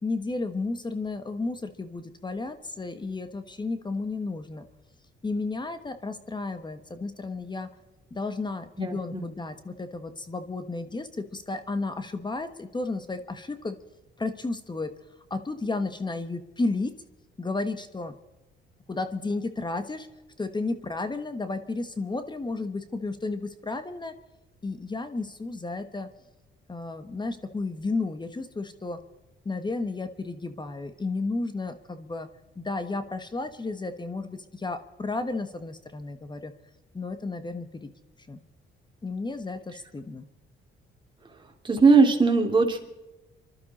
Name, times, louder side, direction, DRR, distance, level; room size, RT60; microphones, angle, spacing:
voice 1, 0.0-4.7 5.2-7.7 8.1-13.8 14.2-14.9 15.3-16.9 17.4-18.1 18.9-20.1 20.4-24.1 24.6-26.1 26.7-29.0 29.4-32.3 32.6-36.5 36.9-37.9 38.3-38.4 39.0-40.3, left 3 dB, 20° left, 9 dB, 1.3 m, -32 dB
voice 2, 8.8-9.3 41.6-42.8, right 4 dB, 25° right, 2 dB, 2.9 m, -20 dB
27.0 x 12.0 x 4.2 m, 1.1 s
cardioid pair, 90°, 20 cm